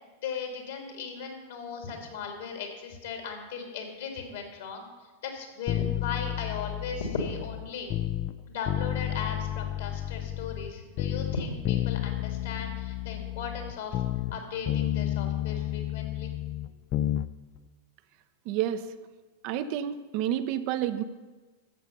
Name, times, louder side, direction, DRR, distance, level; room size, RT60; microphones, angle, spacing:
voice 1, 0.2-4.9 5.2-7.9 8.5-14.0 14.3-16.3, left 5 dB, 60° left, 3 dB, 2.5 m, -37 dB
sound 1, 5.7-8.3 8.7-10.7 11.0-14.4 14.7-17.3 17.6-17.7, left 13 dB, 35° left, 0.4 m, -31 dB
voice 2, 18.5-18.9 19.4-21.0, right 11 dB, 45° right, 11 dB, 0.6 m, -29 dB
13.0 x 8.1 x 5.4 m, 1.3 s
figure-of-eight pair, 90°, 0 cm